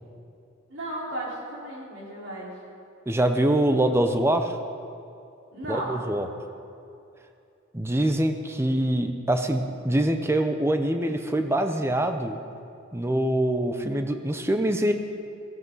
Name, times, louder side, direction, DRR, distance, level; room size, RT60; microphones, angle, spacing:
voice 1, 0.7-2.5 5.5-6.0, right 1 dB, 65° right, -5 dB, 4.3 m, -34 dB
voice 2, 3.1-4.6 5.7-6.3 7.7-12.4 12.9-14.9, right 1 dB, 10° right, 7 dB, 0.7 m, -24 dB
16.5 x 15.0 x 4.0 m, 2.6 s
head